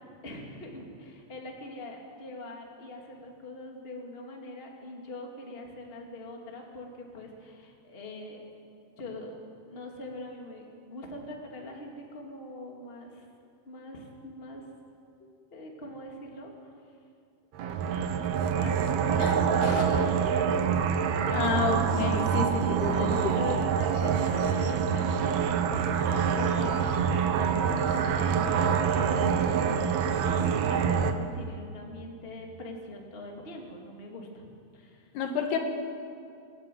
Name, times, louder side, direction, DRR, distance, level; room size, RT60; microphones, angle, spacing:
voice 1, 0.2-8.5 9.0-9.3 9.7-13.2 13.7-14.6 15.2-16.7 18.5-20.6 21.2-21.6 22.2-22.3 23.3-30.2 30.7-34.5 34.7-35.1, left 2 dB, 20° left, 0 dB, 2.1 m, -42 dB
sound 1, 17.6-31.1, right 7 dB, 90° right, 1.5 m, -26 dB
voice 2, 21.3-23.4 35.2-35.6, left 5 dB, 80° left, 4 dB, 3.9 m, -29 dB
26.0 x 13.0 x 9.3 m, 2.4 s
omnidirectional pair, 4.6 m